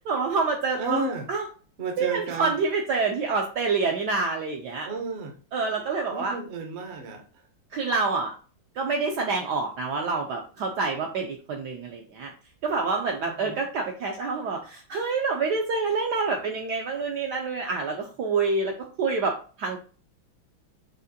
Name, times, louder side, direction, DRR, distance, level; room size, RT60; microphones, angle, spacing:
voice 1, 0.1-1.0 1.3-1.4 2.0-4.9 5.5-6.3 7.7-8.3 8.8-12.3 12.6-19.8, right 4 dB, 75° right, 1 dB, 1.0 m, -27 dB
voice 2, 0.7-1.3 1.8-2.6 4.8-5.4 6.1-7.5 13.2-13.6, right 3 dB, 60° right, 3 dB, 0.7 m, -33 dB
6.3 x 2.5 x 2.7 m, 0.39 s
omnidirectional pair, 2.3 m